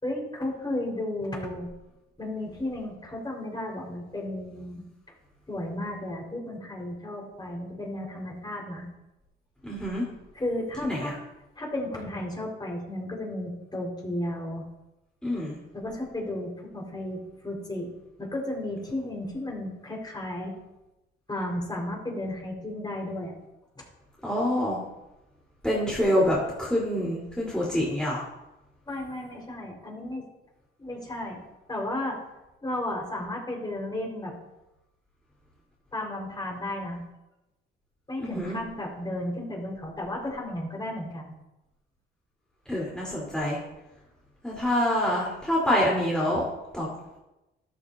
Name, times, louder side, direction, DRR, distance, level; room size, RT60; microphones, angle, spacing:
voice 1, 0.0-1.7 2.2-4.8 5.5-8.9 10.3-11.1 11.6-14.6 15.7-17.9 18.2-20.5 21.3-23.3 23.7-23.8 28.8-30.2 30.8-31.4 31.7-32.2 32.6-34.3 35.9-37.0 38.1-41.3, left 1 dB, 20° left, -2 dB, 4.9 m, -33 dB
voice 2, 9.6-10.0 10.8-11.2 15.2-15.5 24.2-24.8 25.6-28.2 38.2-38.6 42.7-43.6 44.4-46.4 46.7-46.9, equal, 5° left, -6 dB, 4.0 m, -26 dB
13.5 x 12.0 x 2.8 m, 0.97 s
cardioid pair, 90°, 20 cm